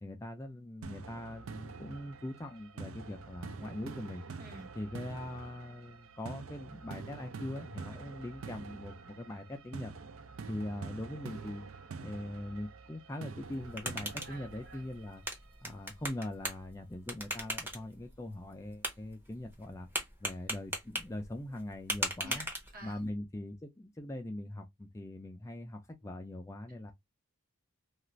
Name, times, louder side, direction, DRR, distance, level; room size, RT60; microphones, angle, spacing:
voice 1, 0.0-4.3 4.8-9.9 10.5-11.6 12.0-15.2 15.6-19.9 20.2-22.5 22.8-26.9, left 1 dB, 15° left, 0.3 m, -42 dB
sound 1, 0.8-15.8, right 5 dB, 65° right, 0.4 m, -47 dB
voice 2, 4.4-4.7 7.9-8.0 14.2-14.8 22.2-23.0, right 1 dB, 40° right, 1.1 m, -50 dB
sound 2, 13.4-23.1, right 1 dB, 10° right, 0.8 m, -41 dB
2.4 x 2.4 x 3.0 m
head